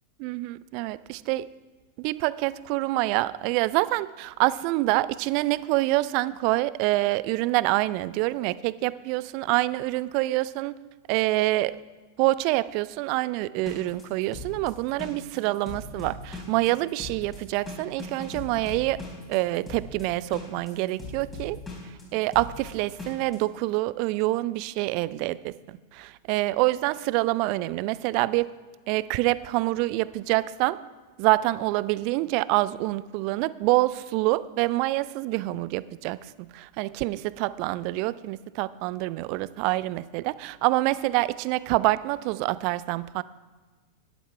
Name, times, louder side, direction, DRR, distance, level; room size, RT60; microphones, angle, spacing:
voice 1, 0.2-1.5 2.0-10.8 11.1-11.8 12.2-19.0 19.3-21.6 22.1-25.5 25.9-28.5 28.9-30.8 31.2-43.2, right 19 dB, 45° right, 18 dB, 0.3 m, -26 dB
sound 1, 13.6-23.4, left 2 dB, 20° left, 3.6 m, -39 dB
12.5 x 11.0 x 3.4 m, 1.4 s
figure-of-eight pair, 90°, 0 cm